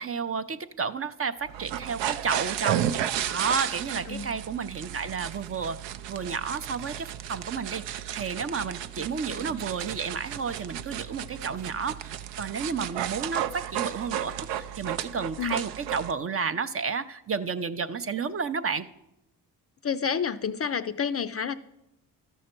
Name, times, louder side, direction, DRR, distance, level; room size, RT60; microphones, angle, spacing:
voice 1, 0.0-18.9, right 5 dB, 35° right, 11 dB, 0.5 m, -32 dB
sound 1, 1.5-16.1, right 11 dB, 80° right, 0.6 m, -33 dB
voice 2, 9.3-9.6 15.4-15.6 19.8-21.5, left 7 dB, 35° left, 11 dB, 0.4 m, -30 dB
12.5 x 6.4 x 4.4 m, 0.89 s
cardioid pair, 75°, 43 cm